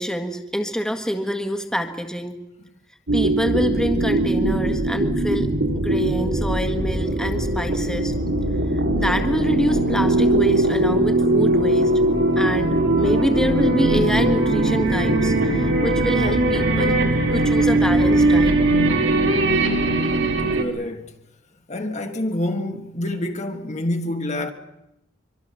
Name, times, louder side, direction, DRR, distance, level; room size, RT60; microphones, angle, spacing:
voice 1, 0.0-2.4 3.1-8.1 8.7-11.9 12.4-17.0 17.3-18.6, equal, 5° left, 1.7 m, -26 dB
sound 1, 3.1-20.6, right 1 dB, 80° right, 3.7 m, -20 dB
voice 2, 20.5-21.1 21.7-24.5, left 1 dB, 35° left, 1.6 m, -27 dB
24.5 x 24.0 x 7.0 m
head